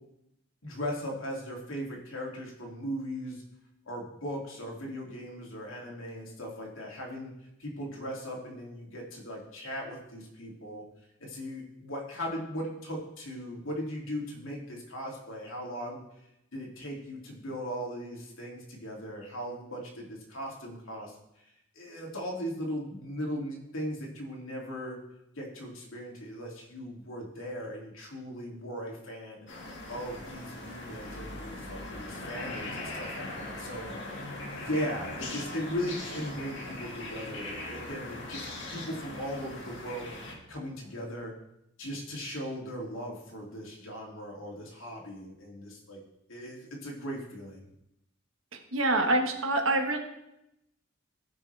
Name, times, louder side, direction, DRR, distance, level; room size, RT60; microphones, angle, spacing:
voice 1, 0.6-3.4 3.9-7.3 7.6-10.8 11.2-16.0 16.5-25.0 25.4-29.5 29.9-41.3 41.8-46.0 46.3-47.7, equal, 85° left, -1 dB, 2.6 m, -38 dB
sound 1, 29.5-40.3, left 2 dB, 65° left, 2.0 m, -40 dB
voice 2, 48.5-50.0, right 2 dB, 80° right, 4 dB, 1.4 m, -26 dB
16.0 x 6.2 x 3.4 m, 0.85 s
head